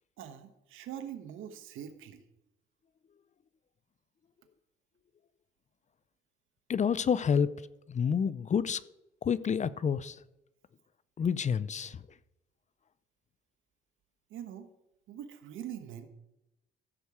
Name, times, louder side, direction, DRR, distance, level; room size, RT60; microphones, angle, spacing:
voice 1, 0.2-2.2 14.3-14.7 15.1-16.1, right 10 dB, 85° right, 1.2 m, -43 dB
voice 2, 6.7-7.5 7.9-8.8 9.2-10.2 11.2-12.1, left 7 dB, 35° left, 0.5 m, -29 dB
15.0 x 7.0 x 4.8 m
cardioid pair, 90°, 20 cm